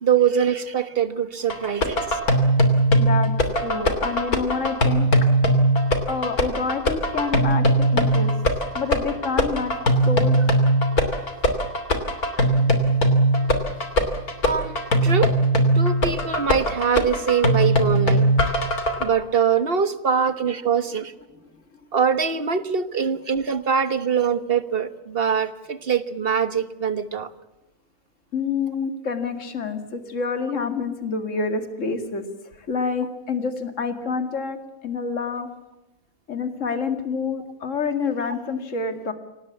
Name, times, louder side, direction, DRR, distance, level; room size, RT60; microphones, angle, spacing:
voice 1, 0.0-2.2 14.4-15.3 15.7-18.3 19.0-21.1 21.9-27.3, right 7 dB, 40° right, 12 dB, 1.5 m, -23 dB
sound 1, 1.5-19.1, right 1 dB, 85° left, 3.4 m, -20 dB
voice 2, 3.0-5.1 6.1-8.3 8.7-9.7 10.1-10.4 28.3-32.2 32.6-34.6 34.8-35.5 36.3-39.1, left 5 dB, 55° left, 8 dB, 2.5 m, -27 dB
26.5 x 18.5 x 8.3 m, 1.0 s
omnidirectional pair, 1.5 m